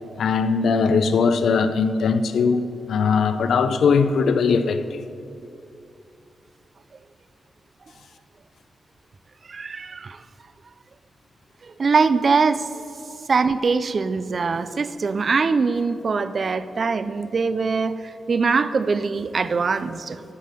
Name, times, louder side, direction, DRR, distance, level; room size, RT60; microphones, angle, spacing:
voice 1, 0.2-5.1, left 5 dB, 85° left, 0.5 m, -20 dB
voice 2, 9.5-10.2 11.6-12.9 13.3-20.2, right 4 dB, 40° right, 0.4 m, -22 dB
13.0 x 7.4 x 6.7 m
wide cardioid pair, 150°, 0 cm